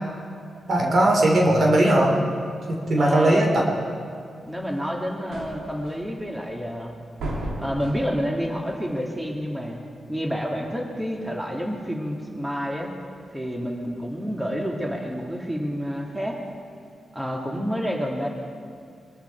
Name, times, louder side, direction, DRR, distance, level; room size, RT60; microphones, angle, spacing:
voice 1, 0.7-2.1 2.7-3.7, right 1 dB, 65° right, 0 dB, 3.1 m, -19 dB
voice 2, 3.0-3.5 4.5-6.9 7.6-9.8 10.1-12.9 13.3-16.4 17.1-18.3, equal, 10° right, 0 dB, 2.5 m, -29 dB
sound 1, 4.4-16.5, right 1 dB, 80° right, 3.0 m, -40 dB
23.5 x 13.5 x 4.7 m, 2.3 s
cardioid pair, 55°, 0 cm